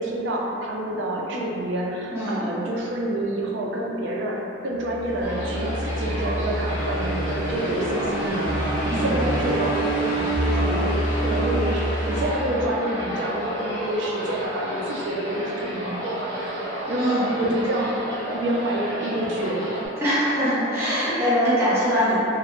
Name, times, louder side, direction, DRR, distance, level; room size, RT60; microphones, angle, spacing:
voice 1, 0.0-16.6 16.9-18.0 18.3-19.7, right 1 dB, 60° right, -2 dB, 0.4 m, -28 dB
voice 2, 2.1-2.5 8.8-9.2 16.9-17.3 20.0-22.2, equal, 15° right, -13 dB, 0.6 m, -22 dB
sound 1, 4.8-13.1, right 1 dB, 70° left, 0.7 m, -27 dB
sound 2, 5.2-19.9, right 1 dB, 80° right, 0.8 m, -31 dB
2.8 x 2.1 x 2.9 m, 2.9 s
head